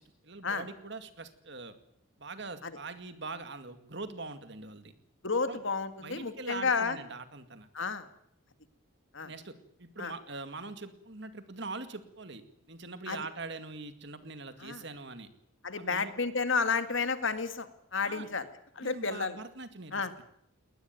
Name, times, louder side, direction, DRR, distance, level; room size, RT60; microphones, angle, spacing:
voice 1, 0.0-1.8 2.2-4.9 5.5-5.6 6.0-7.7 9.2-15.3 15.8-16.1 18.0-18.3 18.8-20.2, right 3 dB, 55° right, 10 dB, 2.2 m, -43 dB
voice 2, 5.2-7.0 7.7-8.1 9.1-9.3 10.0-10.1 13.1-13.3 14.6-14.8 15.6-17.7 17.9-18.5 18.8-19.4 19.9-20.1, left 4 dB, 65° left, 10 dB, 2.0 m, -31 dB
20.5 x 19.5 x 9.3 m, 0.75 s
head